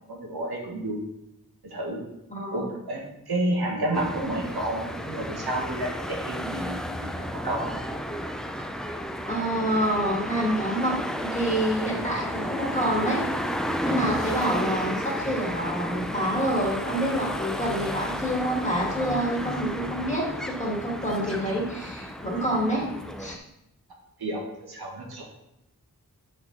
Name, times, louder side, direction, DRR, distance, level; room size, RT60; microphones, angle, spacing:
voice 1, 0.1-1.0 1.6-2.1 2.5-7.7 24.2-25.2, right 1 dB, 90° right, -1 dB, 1.5 m, -30 dB
voice 2, 2.3-2.7 9.3-13.2 13.8-22.9 23.2-23.4, equal, 20° left, -3 dB, 2.1 m, -27 dB
sound 1, 3.9-23.4, equal, ahead, 0.4 m, -32 dB
6.7 x 4.3 x 4.0 m, 0.85 s
wide cardioid pair, 70°, 37 cm